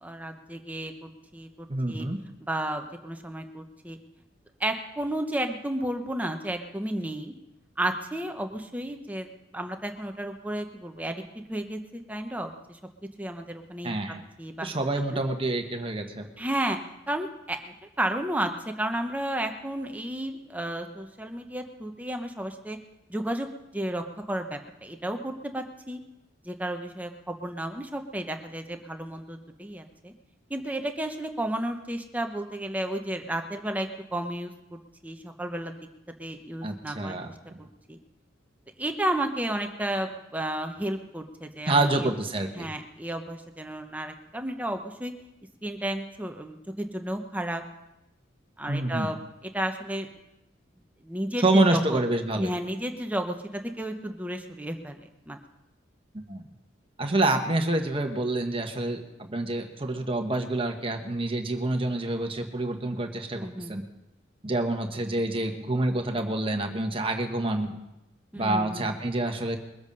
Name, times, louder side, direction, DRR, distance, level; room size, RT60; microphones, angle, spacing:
voice 1, 0.0-2.1 2.4-4.0 4.6-7.3 7.8-12.8 13.2-14.0 14.4-14.7 15.1-15.2 16.4-16.8 17.1-18.5 18.8-22.8 23.1-23.5 23.7-26.0 26.4-30.1 30.5-35.7 36.2-37.2 37.9-38.0 38.8-42.1 42.5-45.1 45.6-47.6 48.6-49.2 49.4-50.1 51.0-52.0 52.4-55.0 55.3-55.4 63.3-63.8 68.3-68.9, right 1 dB, 10° right, 5 dB, 0.9 m, -32 dB
voice 2, 1.7-2.2 13.8-14.3 14.6-16.3 36.6-37.3 41.7-42.7 48.7-49.1 51.4-52.5 56.1-56.4 57.0-63.8 64.4-67.7 68.3-69.6, right 2 dB, 30° right, 4 dB, 1.3 m, -27 dB
22.0 x 8.0 x 5.4 m, 0.93 s
head